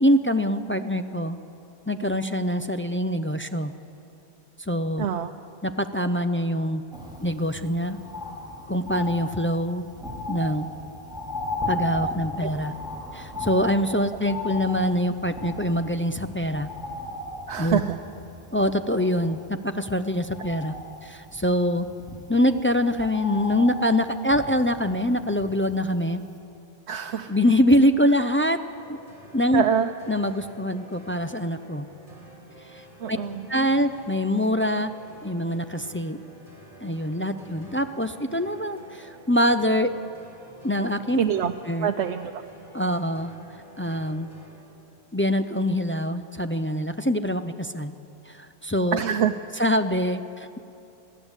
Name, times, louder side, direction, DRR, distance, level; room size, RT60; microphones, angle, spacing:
voice 1, 0.0-1.4 1.9-3.7 4.6-5.1 5.6-6.8 7.2-8.0 8.7-9.8 10.3-10.7 11.7-12.8 13.1-16.7 17.6-17.8 18.5-20.7 21.0-21.9 22.3-26.2 27.3-28.6 28.9-29.0 29.3-29.7 30.1-31.9 32.7-32.8 33.1-33.2 33.5-34.9 35.2-36.2 36.8-39.9 40.6-41.2 41.7-41.9 42.7-43.3 43.8-44.3 45.1-47.9 48.3-49.0 49.6-50.6, equal, 15° left, 9 dB, 0.4 m, -24 dB
voice 2, 5.0-5.3 17.5-18.0 26.9-27.3 29.5-29.9 33.0-33.5 41.2-41.5 41.8-42.4 48.9-49.3, right 8 dB, 85° right, 6 dB, 1.0 m, -25 dB
Bird, 6.9-26.0 26.4-26.5, left 1 dB, 5° right, 3.1 m, -36 dB
sound 1, 28.7-44.5, right 1 dB, 30° left, 5.6 m, -49 dB
22.5 x 15.5 x 8.1 m, 2.7 s
omnidirectional pair, 1.1 m